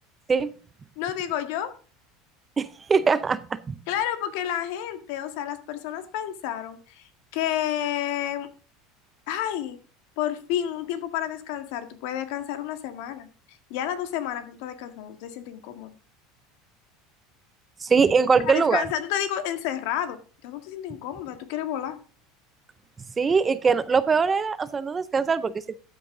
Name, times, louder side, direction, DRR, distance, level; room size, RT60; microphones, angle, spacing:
voice 1, 1.0-1.7 3.9-8.5 9.3-9.8 10.2-15.9 18.4-22.0, left 11 dB, 65° left, 10 dB, 1.7 m, -30 dB
voice 2, 2.6-3.8 17.8-18.8 23.2-25.8, right 5 dB, 15° right, 16 dB, 0.5 m, -22 dB
13.5 x 8.1 x 3.8 m, 0.38 s
cardioid pair, 165°, 0 cm